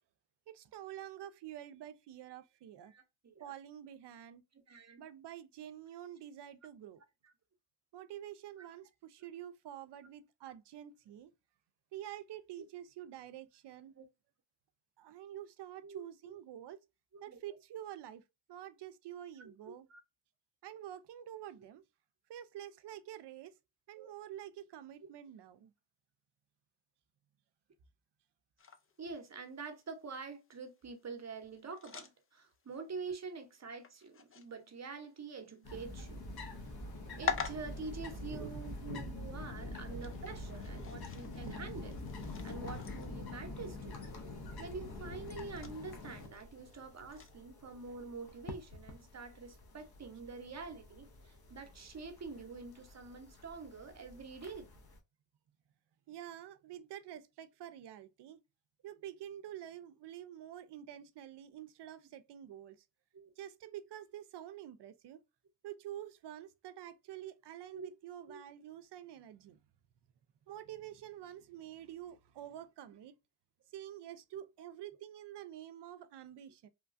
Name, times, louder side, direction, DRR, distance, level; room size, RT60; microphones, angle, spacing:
voice 1, 0.5-2.9 3.4-4.4 5.0-7.0 7.9-11.3 11.9-14.0 15.0-16.8 17.2-18.2 18.5-19.9 20.6-21.8 22.3-23.6 23.9-25.7 38.2-39.1 39.5-40.1 40.7-41.6 56.1-58.4 58.8-62.8 63.4-65.2 65.6-69.6 70.5-73.1 73.7-76.7, right 11 dB, 65° right, 0.5 m, -48 dB
voice 2, 2.9-3.5 4.7-5.0 8.6-8.7 14.0-14.1 15.8-16.3 17.1-17.4 19.9-20.0 23.9-24.1 29.0-36.3 36.6-36.7 37.2-42.1 42.4-44.1 44.6-54.7 63.1-63.3 67.7-67.9 68.3-68.4 74.3-74.5, right 4 dB, 35° right, 0.8 m, -46 dB
sound 1, 28.6-47.4, left 6 dB, 30° left, 0.5 m, -48 dB
sound 2, 35.6-55.0, left 3 dB, 50° left, 0.9 m, -47 dB
sound 3, 35.9-45.3, right 1 dB, 80° left, 1.5 m, -51 dB
3.1 x 2.3 x 2.5 m
cardioid pair, 70°, 46 cm